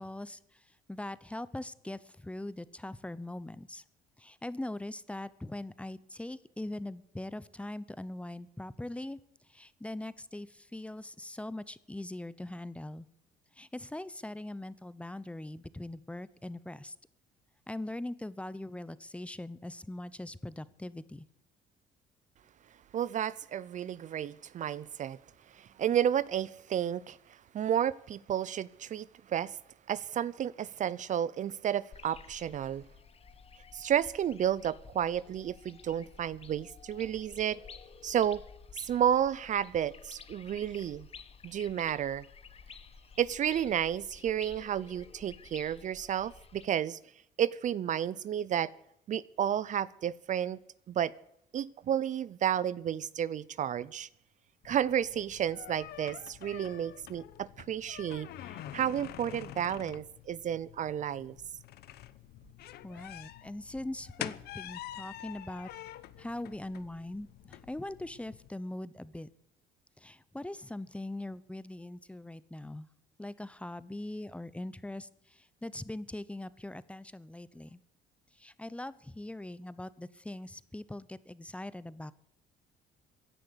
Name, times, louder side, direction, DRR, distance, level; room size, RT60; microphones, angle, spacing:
voice 1, 0.0-3.8 4.2-9.2 9.5-13.1 13.5-16.9 17.7-21.2 62.6-65.7 66.2-69.3 70.0-72.9 73.2-77.8 78.3-82.1, left 1 dB, 5° left, 0.8 m, -41 dB
voice 2, 22.9-25.2 25.5-27.2 27.5-29.6 29.9-32.8 33.7-37.6 38.0-38.4 38.7-41.1 41.4-42.2 43.2-47.0 47.4-48.7 49.1-50.6 50.9-51.1 51.5-54.1 54.6-58.3 58.7-61.4, right 10 dB, 45° right, 0.6 m, -31 dB
sound 1, 31.9-46.6, left 6 dB, 35° left, 1.4 m, -52 dB
sound 2, 54.6-68.5, left 13 dB, 70° left, 1.0 m, -47 dB
16.5 x 10.5 x 8.1 m
cardioid pair, 110°, 17 cm